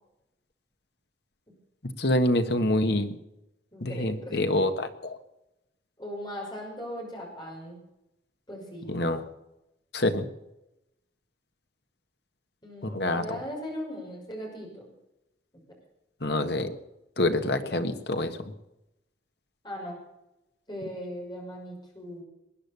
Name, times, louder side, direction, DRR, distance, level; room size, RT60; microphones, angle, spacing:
voice 1, 2.0-3.1 3.8-5.2 8.9-9.2 9.9-10.3 12.8-13.4 16.2-16.8 17.2-18.5, left 1 dB, 70° left, 8 dB, 1.5 m, -26 dB
voice 2, 3.7-4.5 6.0-7.8 8.5-8.9 12.6-14.9 17.6-18.4 19.6-20.0 20.7-22.2, equal, 25° left, -1 dB, 5.9 m, -39 dB
20.5 x 10.0 x 6.9 m, 0.90 s
head